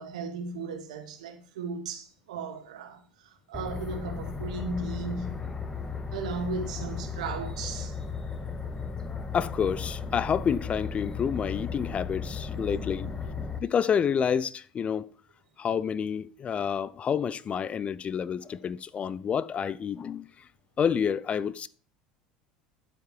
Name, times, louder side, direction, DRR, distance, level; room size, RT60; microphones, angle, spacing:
voice 1, 0.0-3.0 3.5-5.5 6.1-8.0 12.6-12.7, right 3 dB, 75° right, 2.0 m, -36 dB
sound 1, 3.5-13.6, left 5 dB, 20° left, 1.8 m, -35 dB
voice 2, 9.3-13.1 13.6-15.1 15.6-20.2 20.8-21.7, left 7 dB, 35° left, 0.6 m, -28 dB
12.0 x 7.7 x 4.6 m
hypercardioid pair, 75°, 4 cm